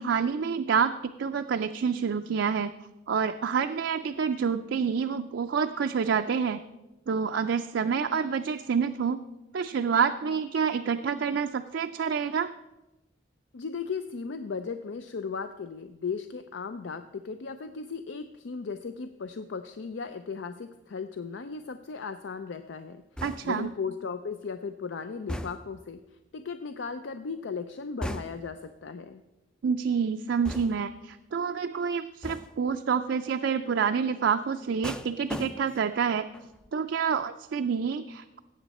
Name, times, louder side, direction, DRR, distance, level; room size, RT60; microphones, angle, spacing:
voice 1, 0.0-2.7 3.1-6.6 7.1-9.2 9.5-12.5 23.2-23.7 29.6-36.2 36.7-38.4, right 6 dB, 70° right, 7 dB, 0.4 m, -28 dB
voice 2, 13.5-26.0 26.3-29.2, left 5 dB, 75° left, 9 dB, 0.5 m, -36 dB
sound 1, 23.2-23.7 25.3-25.9 28.0-28.6 30.5-31.0 32.2-32.7 34.8-36.0 36.3-36.7, equal, 5° left, 0.3 m, -38 dB
16.5 x 7.2 x 4.2 m, 1.0 s
head